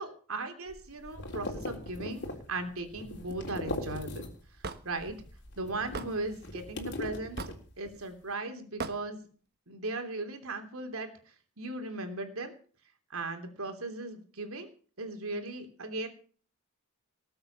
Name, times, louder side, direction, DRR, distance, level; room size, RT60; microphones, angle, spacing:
voice 1, 0.0-4.2 4.8-5.1 5.6-7.4 7.8-9.2 9.7-11.1 11.6-12.5 13.1-14.7 15.0-16.1, right 2 dB, 90° right, 6 dB, 3.2 m, -37 dB
sound 1, 0.7-4.6 4.9-8.0, left 1 dB, 55° left, 3.6 m, -40 dB
Hammer / Wood, 4.6-4.8 5.9-6.1 7.4-7.7 8.8-9.0, right 3 dB, 50° right, 1.3 m, -36 dB
19.5 x 7.9 x 7.0 m, 0.41 s
head